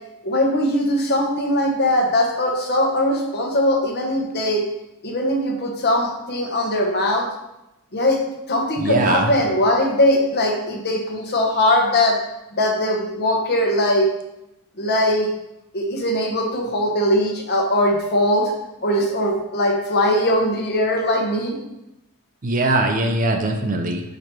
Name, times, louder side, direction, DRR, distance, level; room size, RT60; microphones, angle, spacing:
voice 1, 0.2-4.6 5.0-7.2 7.9-8.2 8.5-12.2 12.5-14.1 14.8-15.3 15.7-18.5 18.8-21.6, left 1 dB, 45° left, 1 dB, 1.1 m, -20 dB
voice 2, 8.8-9.3 22.4-24.0, right 2 dB, 35° right, 5 dB, 0.6 m, -21 dB
5.0 x 4.6 x 4.5 m, 0.90 s
head